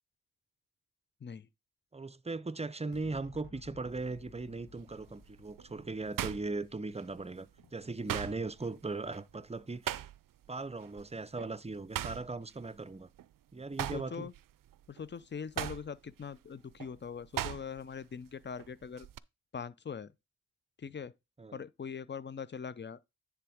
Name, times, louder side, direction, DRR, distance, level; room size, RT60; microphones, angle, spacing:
voice 1, 1.9-10.0 10.5-13.1 13.5-14.3 21.4-21.6, right 3 dB, 20° right, 0.5 m, -39 dB
sound 1, 2.9-9.6, left 6 dB, 75° left, 0.8 m, -59 dB
sound 2, 3.9-4.2 4.8-7.3 7.6-10.5 10.8-11.0 11.4-13.3 13.6-18.0 18.3-19.2, right 12 dB, 75° right, 0.5 m, -40 dB
voice 2, 13.9-14.3 14.9-19.1 19.5-20.1 20.8-21.1 21.5-23.0, left 6 dB, 35° left, 0.6 m, -42 dB
10.0 x 3.5 x 5.0 m
cardioid pair, 70°, 34 cm